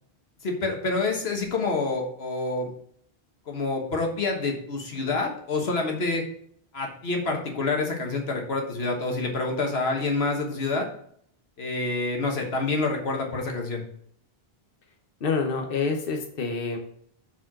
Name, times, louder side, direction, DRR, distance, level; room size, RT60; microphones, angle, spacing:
voice 1, 0.4-2.7 3.5-6.2 6.7-10.9 11.6-13.8, left 3 dB, 90° left, 2 dB, 1.6 m, -27 dB
voice 2, 15.2-16.8, left 4 dB, 65° left, 2 dB, 1.2 m, -27 dB
7.1 x 4.5 x 5.9 m, 0.64 s
omnidirectional pair, 1.0 m